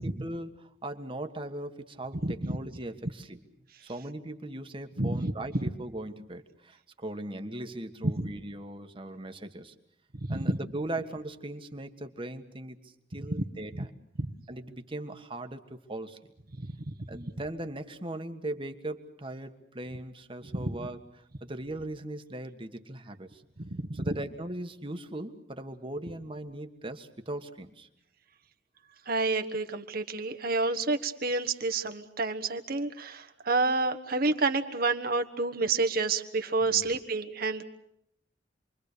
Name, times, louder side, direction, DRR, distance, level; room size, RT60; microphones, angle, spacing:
voice 1, 0.0-3.4 3.8-9.7 10.3-13.9 14.5-16.2 17.1-21.0 21.4-23.4 23.9-27.9 36.7-36.9, right 1 dB, 30° right, 7 dB, 1.6 m, -39 dB
voice 2, 2.2-2.6 5.0-5.3 8.0-8.3 10.3-10.5 13.3-13.4 13.8-13.9 14.2-14.3 16.7-16.9 20.5-20.7 23.6-24.0 29.1-37.6, right 3 dB, 55° right, 7 dB, 1.4 m, -29 dB
28.0 x 23.0 x 6.8 m, 0.76 s
head